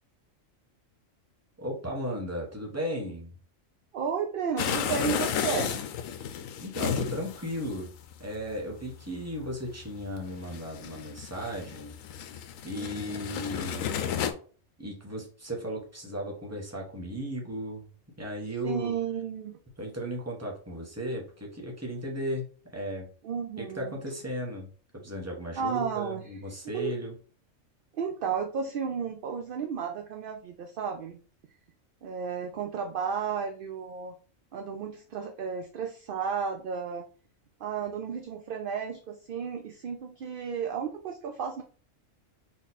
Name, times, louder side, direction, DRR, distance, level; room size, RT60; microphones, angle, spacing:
voice 1, 1.6-3.3 6.6-7.9 8.2-11.9 12.6-13.9 14.8-17.8 18.2-18.9 19.8-22.4 22.7-23.1 23.6-24.7 24.9-27.1, equal, 10° right, -1 dB, 1.1 m, -35 dB
voice 2, 3.9-5.8 12.7-13.2 18.6-19.6 23.2-24.0 25.6-26.4 26.7-27.0 27.9-31.2 32.0-34.2 34.5-37.1 37.6-41.6, right 6 dB, 60° right, 4 dB, 0.6 m, -33 dB
sound 1, 4.6-14.3, left 8 dB, 85° left, 1.0 m, -33 dB
4.1 x 3.1 x 4.1 m, 0.41 s
omnidirectional pair, 1.4 m